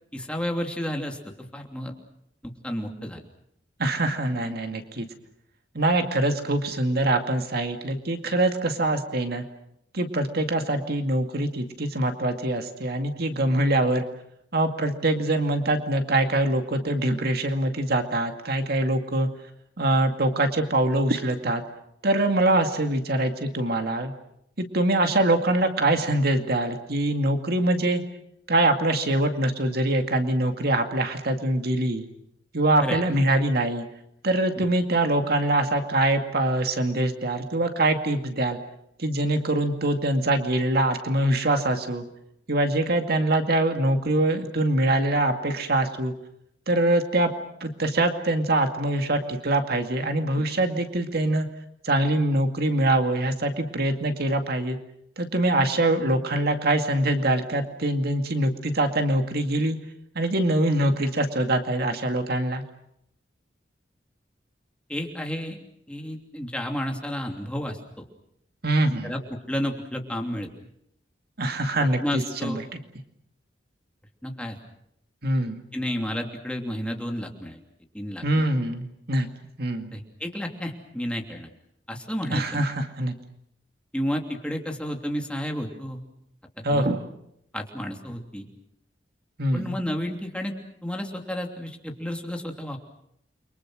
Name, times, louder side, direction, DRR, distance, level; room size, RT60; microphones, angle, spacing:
voice 1, 0.1-1.9 2.4-3.2 32.8-33.0 34.6-34.7 64.9-65.6 65.9-68.0 69.0-70.5 72.0-72.6 74.2-74.6 75.7-77.6 77.9-78.4 79.9-81.5 81.9-82.6 83.9-86.0 86.7-86.8 87.5-88.5 89.5-90.5 90.8-92.8, equal, 5° left, 2 dB, 2.9 m, -31 dB
voice 2, 3.8-5.1 5.7-9.4 9.9-14.0 14.5-19.3 19.8-21.6 22.0-24.1 24.6-28.0 28.5-32.1 32.5-33.9 34.2-38.6 39.0-42.1 42.5-46.1 46.7-47.3 47.6-51.5 51.8-54.8 55.2-59.8 60.1-62.6 68.6-69.1 71.4-72.8 75.2-75.6 78.2-79.3 79.6-80.0 82.3-83.1 86.6-87.1 89.4-89.8, right 1 dB, 60° right, 6 dB, 2.3 m, -24 dB
30.0 x 24.0 x 6.4 m, 0.76 s
head